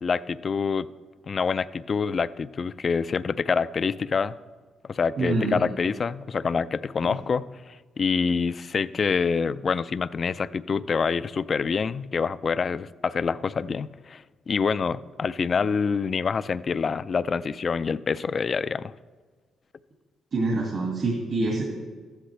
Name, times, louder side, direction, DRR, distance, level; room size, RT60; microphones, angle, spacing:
voice 1, 0.0-0.9 1.3-4.4 4.9-18.9, left 5 dB, 40° left, 16 dB, 0.3 m, -26 dB
voice 2, 5.2-5.7 20.3-21.7, right 2 dB, 55° right, -1 dB, 2.0 m, -26 dB
14.5 x 11.5 x 3.3 m, 1.5 s
cardioid pair, 90°, 0 cm